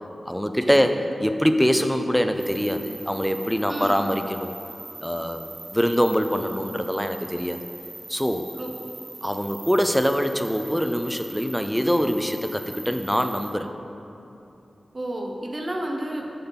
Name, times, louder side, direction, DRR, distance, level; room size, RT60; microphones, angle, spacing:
voice 1, 0.3-4.6 5.0-7.6 8.1-8.5 9.2-13.7, equal, ahead, 7 dB, 0.4 m, -24 dB
sound 1, 2.4-13.5, right 2 dB, 65° right, 1.3 m, -41 dB
voice 2, 3.7-4.0 8.6-8.7 14.9-16.2, right 1 dB, 35° right, 1 dB, 0.8 m, -31 dB
7.7 x 3.9 x 5.4 m, 2.9 s
wide cardioid pair, 80°, 0 cm